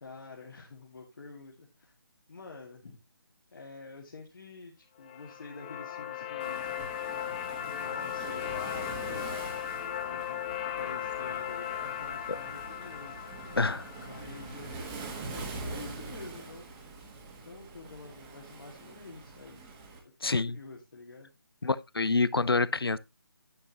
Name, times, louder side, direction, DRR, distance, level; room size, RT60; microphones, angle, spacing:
voice 1, 0.0-1.9 2.3-3.0 3.5-6.8 7.6-10.4 10.8-13.2 14.0-16.8 17.4-19.6 20.0-21.3, left 3 dB, 60° left, 2.0 m, -48 dB
sound 1, 5.0-15.1, left 10 dB, 20° left, 0.7 m, -37 dB
Waves surf, 6.4-20.0, right 3 dB, 15° right, 1.5 m, -44 dB
voice 2, 13.5-13.9 20.2-20.6 21.6-23.0, left 3 dB, 90° left, 0.7 m, -27 dB
10.0 x 7.9 x 2.9 m
figure-of-eight pair, 160°, 12 cm